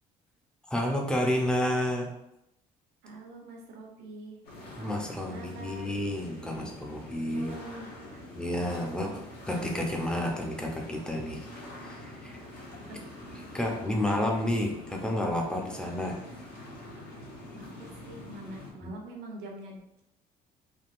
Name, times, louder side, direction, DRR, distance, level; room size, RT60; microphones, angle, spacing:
voice 1, 0.7-2.1 4.8-7.5 8.3-9.1 9.5-11.4 11.8-12.4 13.5-16.2 18.8-18.9, left 1 dB, 5° left, 1 dB, 0.5 m, -30 dB
voice 2, 3.0-4.4 5.3-5.9 6.5-6.6 7.3-8.2 9.0-9.2 12.9-13.1 17.5-20.0, right 2 dB, 80° right, 1 dB, 0.8 m, -45 dB
sound 1, 4.4-18.7, left 1 dB, 65° left, 1.0 m, -45 dB
3.4 x 2.3 x 2.5 m, 0.83 s
cardioid pair, 110°, 17 cm